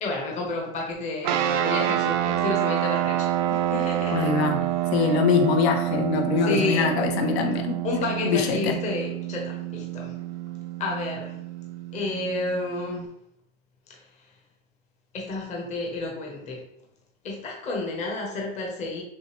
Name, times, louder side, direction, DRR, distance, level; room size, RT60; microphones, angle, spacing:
voice 1, 0.0-4.3 4.6-5.1 6.4-6.9 7.8-10.2 10.8-11.4 11.9-13.1 15.1-16.6 17.2-19.0, left 3 dB, 20° left, 0 dB, 0.8 m, -31 dB
sound 1, 1.2-13.1, right 12 dB, 45° right, 0.4 m, -28 dB
voice 2, 4.1-4.6 4.9-7.8 8.2-8.8, left 6 dB, 70° left, 5 dB, 0.8 m, -23 dB
6.2 x 2.1 x 3.2 m, 0.72 s
supercardioid pair, 150°, 33 cm